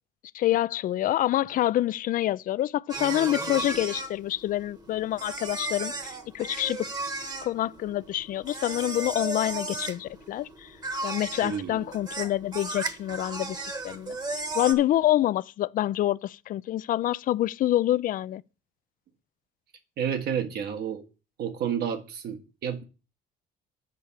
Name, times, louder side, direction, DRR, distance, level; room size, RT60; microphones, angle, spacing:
voice 1, 0.3-6.9 7.4-10.7 11.0-14.2 14.5-18.4, left 13 dB, 55° left, 0.4 m, -27 dB
sound 1, 2.9-14.7, right 2 dB, 20° right, 1.2 m, -35 dB
voice 2, 11.4-11.9 20.0-21.0 21.4-22.8, right 8 dB, 70° right, 1.6 m, -30 dB
8.3 x 5.7 x 6.4 m
cardioid pair, 110°, 17 cm